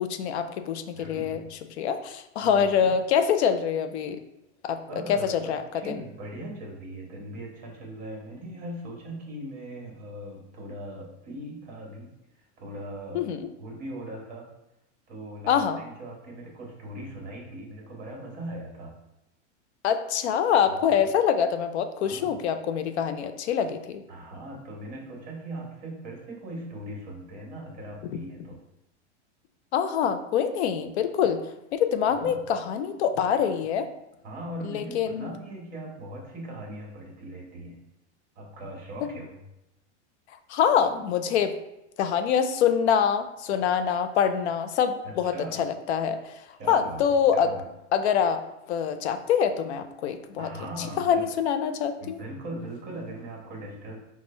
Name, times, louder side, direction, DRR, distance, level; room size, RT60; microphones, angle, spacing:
voice 1, 0.0-1.4 1.8-4.2 4.6-4.8 5.1-6.0 13.1-13.4 15.5-15.8 19.8-24.0 29.7-31.4 31.7-33.9 34.6-35.3 40.5-41.5 42.0-46.2 46.7-47.5 47.9-48.4 48.7-50.5 51.0-52.2, left 8 dB, 70° left, 9 dB, 0.5 m, -25 dB
voice 2, 0.9-1.4 2.4-2.9 4.9-5.5 5.8-12.1 12.6-13.2 13.6-14.5 15.1-18.9 20.7-21.0 22.0-22.3 24.1-28.6 32.1-32.4 34.2-37.8 38.3-39.4 45.2-45.6 46.6-47.0 47.3-47.7 50.4-51.3 52.0-54.0, right 1 dB, 25° right, -1 dB, 1.2 m, -39 dB
4.3 x 2.3 x 4.2 m, 0.88 s
supercardioid pair, 150°, 35 cm